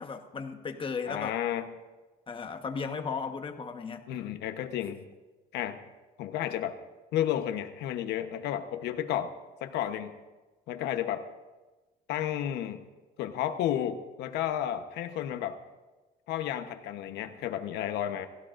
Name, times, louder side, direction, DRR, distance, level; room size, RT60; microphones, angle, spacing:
voice 1, 0.0-1.4 2.3-4.0, left 5 dB, 30° left, 6 dB, 1.2 m, -35 dB
voice 2, 1.1-1.7 4.1-5.1 5.5-5.8 6.2-6.8 7.1-9.3 9.6-10.1 10.7-11.3 12.1-12.8 13.2-15.6 16.3-18.3, left 11 dB, 85° left, 8 dB, 1.0 m, -32 dB
18.5 x 16.0 x 2.6 m, 1.2 s
cardioid pair, 110°, 17 cm